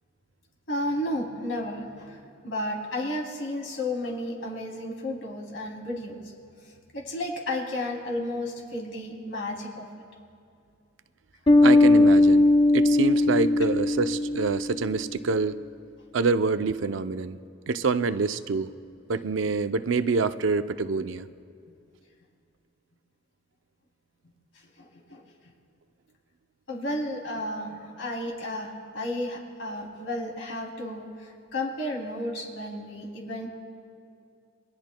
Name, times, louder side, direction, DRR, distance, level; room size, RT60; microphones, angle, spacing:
voice 1, 0.7-6.2 6.9-9.9 24.8-25.2 26.7-33.5, left 1 dB, 80° left, -1 dB, 2.9 m, -33 dB
Bass guitar, 11.5-14.9, left 2 dB, 25° left, 0.8 m, -19 dB
voice 2, 11.6-15.6 16.1-17.4 17.7-18.7 19.1-21.3, right 4 dB, 75° right, 11 dB, 0.5 m, -26 dB
28.5 x 22.0 x 2.2 m, 2.4 s
head